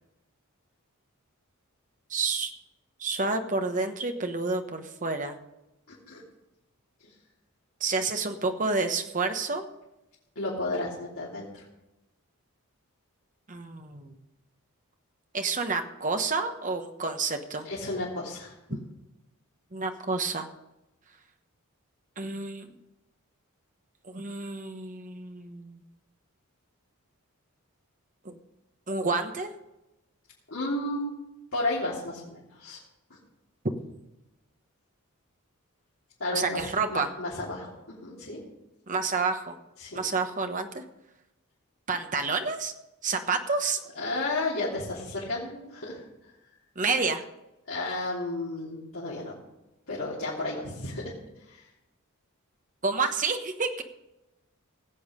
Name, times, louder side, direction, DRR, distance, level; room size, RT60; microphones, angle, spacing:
voice 1, 2.1-2.5 3.0-5.4 7.8-9.7 13.5-14.2 15.3-17.7 19.7-20.5 22.2-22.8 24.0-25.8 28.2-28.4 28.9-29.5 36.3-37.1 38.9-39.6 39.9-40.8 41.9-42.7 43.0-43.8 46.8-47.2 52.8-53.8, right 4 dB, 35° right, 6 dB, 1.1 m, -29 dB
voice 2, 5.9-6.2 10.3-11.6 17.6-18.5 30.5-31.1 31.5-32.8 36.2-36.6 36.9-38.4 39.8-40.0 43.9-46.0 47.7-49.3 49.9-51.1 51.4-51.7, left 2 dB, 65° left, -8 dB, 3.2 m, -32 dB
18.5 x 7.9 x 5.1 m, 0.95 s
head